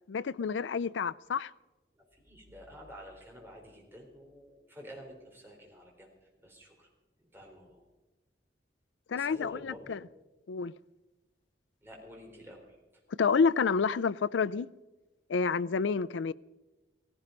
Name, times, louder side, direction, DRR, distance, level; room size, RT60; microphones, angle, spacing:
voice 1, 0.1-1.5 9.1-10.0 10.5-10.7 13.2-14.7 15.3-16.3, left 5 dB, 85° left, 0.4 m, -29 dB
voice 2, 2.0-6.9 7.2-7.8 9.1-10.0 11.8-13.0, equal, 10° right, 4.0 m, -50 dB
16.5 x 16.0 x 5.2 m
head